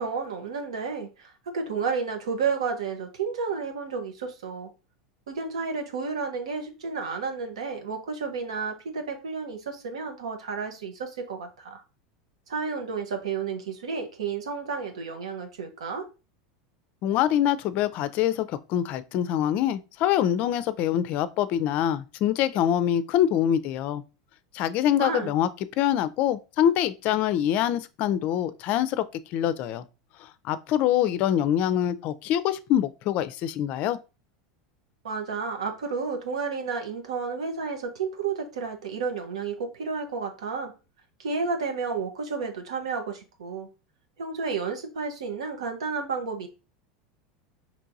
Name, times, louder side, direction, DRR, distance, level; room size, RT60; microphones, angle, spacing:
voice 1, 0.0-4.7 5.3-11.8 12.5-16.1 25.0-25.3 35.0-40.7 41.2-43.7 44.2-46.5, right 5 dB, 85° right, 1.0 m, -31 dB
voice 2, 17.0-24.0 24.5-25.5 25.8-29.0 29.3-29.8 30.5-34.0, left 11 dB, 50° left, 0.4 m, -25 dB
4.5 x 3.0 x 2.6 m
hypercardioid pair, 95°, 3 cm